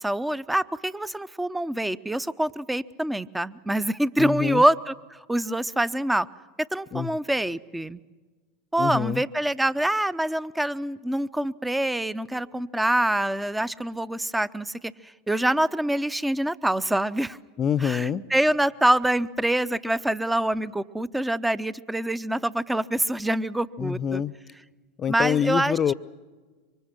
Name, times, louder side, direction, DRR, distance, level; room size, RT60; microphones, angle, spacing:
voice 1, 0.0-6.3 6.6-8.0 8.7-14.9 15.3-17.4 17.8-24.2 25.1-25.8, right 1 dB, 5° right, 17 dB, 0.7 m, -25 dB
voice 2, 4.2-4.6 6.9-7.1 8.8-9.2 17.6-18.3 23.8-24.3 25.0-25.9, left 8 dB, 35° left, 18 dB, 0.8 m, -25 dB
26.5 x 24.5 x 6.1 m, 1.3 s
hypercardioid pair, 85°, 0 cm